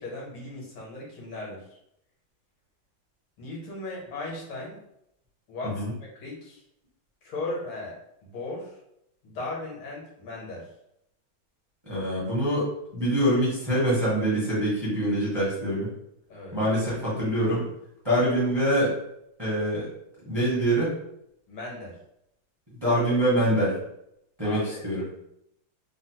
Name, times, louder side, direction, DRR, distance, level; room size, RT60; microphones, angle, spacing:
voice 1, 0.0-1.8 3.4-4.8 5.5-5.8 6.1-6.6 7.2-7.9 8.2-8.8 9.2-10.7 16.3-16.6 21.5-22.0 24.4-24.8, left 2 dB, 80° left, -3 dB, 1.9 m, -37 dB
voice 2, 11.9-15.9 16.5-17.6 18.0-18.9 19.4-19.9 20.2-20.9 22.8-23.8 24.4-25.0, right 1 dB, 25° right, -8 dB, 0.6 m, -24 dB
3.8 x 2.0 x 2.8 m, 0.78 s
omnidirectional pair, 2.2 m